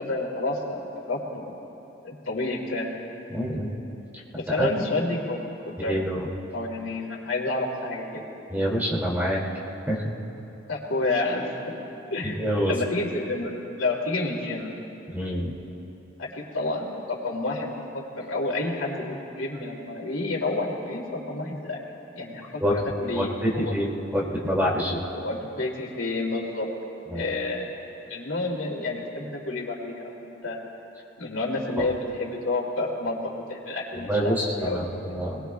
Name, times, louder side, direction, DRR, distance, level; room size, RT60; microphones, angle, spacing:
voice 1, 0.0-1.6 2.0-2.9 4.3-6.0 6.5-8.2 10.7-11.7 12.1-14.7 16.2-21.8 22.1-23.7 25.1-26.7 27.1-27.7 28.1-30.6 31.2-35.0, left 2 dB, 90° left, -2 dB, 2.6 m, -30 dB
voice 2, 3.3-3.7 4.6-4.7 5.9-6.3 8.5-9.4 9.9-10.1 12.2-12.7 15.1-15.5 22.6-22.9 23.1-23.9 24.1-25.1 27.1-27.3 31.8-31.9 33.9-35.5, equal, 10° right, -4 dB, 2.4 m, -26 dB
27.0 x 20.5 x 2.3 m, 3.0 s
head